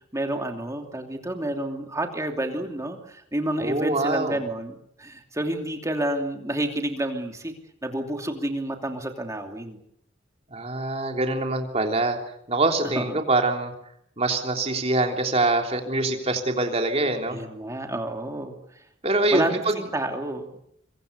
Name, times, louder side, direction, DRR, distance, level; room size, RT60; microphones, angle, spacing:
voice 1, 0.1-7.5 7.8-9.8 12.9-13.2 17.3-18.5 19.3-20.6, right 1 dB, 15° right, 4 dB, 2.9 m, -29 dB
voice 2, 3.6-4.4 10.5-12.2 12.5-13.7 14.2-17.4 19.0-19.8, right 2 dB, 30° right, 3 dB, 3.4 m, -24 dB
25.0 x 24.5 x 6.9 m, 0.73 s
head